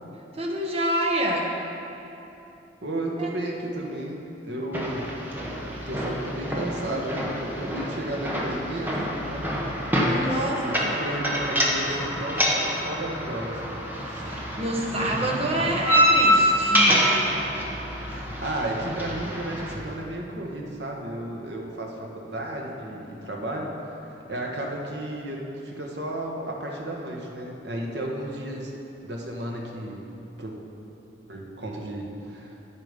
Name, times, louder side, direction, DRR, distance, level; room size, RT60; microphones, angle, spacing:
voice 1, 0.4-1.6 3.2-3.3 10.1-11.0 14.0-17.0, right 1 dB, 35° right, -1 dB, 1.2 m, -27 dB
voice 2, 2.8-5.0 5.9-9.0 9.3-9.5 10.1-14.3 15.1-15.3 18.1-24.0 24.3-28.7 29.0-30.0 30.4-30.5 31.3-32.5, right 1 dB, 65° right, -1 dB, 1.4 m, -33 dB
sound 1, 4.7-19.7, equal, 10° right, 1.2 m, -26 dB
9.9 x 8.8 x 5.3 m, 3.0 s
head